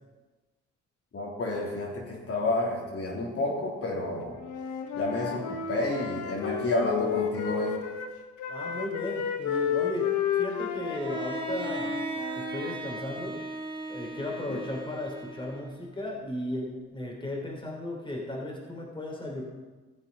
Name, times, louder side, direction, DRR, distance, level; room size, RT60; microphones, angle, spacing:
voice 1, 1.1-4.4 4.9-7.8 14.5-14.6, left 2 dB, 50° left, -3 dB, 3.5 m, -30 dB
Wind instrument woodwind instrument, 4.4-8.1 8.4-12.8, left 8 dB, 85° left, 1.3 m, -32 dB
voice 2, 8.5-10.1 10.3-12.0 12.4-13.4 13.9-19.4, left 1 dB, 15° left, -1 dB, 3.3 m, -35 dB
Bowed string instrument, 10.9-15.9, right 3 dB, 15° right, 1.6 m, -37 dB
15.5 x 7.4 x 5.3 m, 1.2 s
cardioid pair, 90°, 30 cm